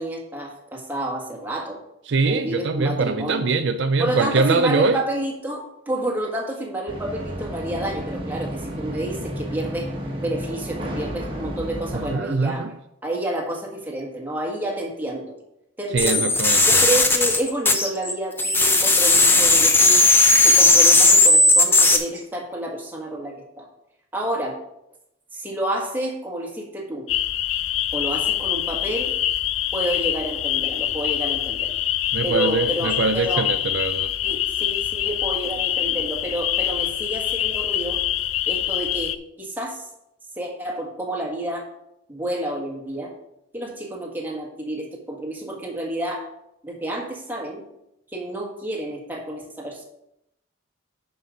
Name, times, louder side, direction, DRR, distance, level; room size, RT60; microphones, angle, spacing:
voice 1, 0.0-1.8 2.2-3.5 4.0-9.9 10.2-12.6 13.0-15.2 15.8-16.3 16.7-20.0 20.4-23.7 24.1-24.6 25.3-27.1 27.9-29.1 29.7-31.8 32.2-33.5 34.2-38.0 38.5-39.8 40.4-41.7 42.1-43.1 43.5-46.2 46.6-47.6 48.1-49.8, right 1 dB, 10° right, -1 dB, 1.7 m, -29 dB
voice 2, 2.1-5.0 11.9-12.7 15.9-16.8 32.1-34.1, right 3 dB, 60° right, 9 dB, 0.5 m, -23 dB
sound 1, 6.9-12.2, equal, 25° right, 1.4 m, -32 dB
sound 2, 16.0-18.1 18.4-22.0, left 2 dB, 10° left, 0.7 m, -16 dB
sound 3, 27.1-39.1, left 12 dB, 80° left, 0.5 m, -25 dB
9.9 x 5.5 x 5.1 m, 0.81 s
head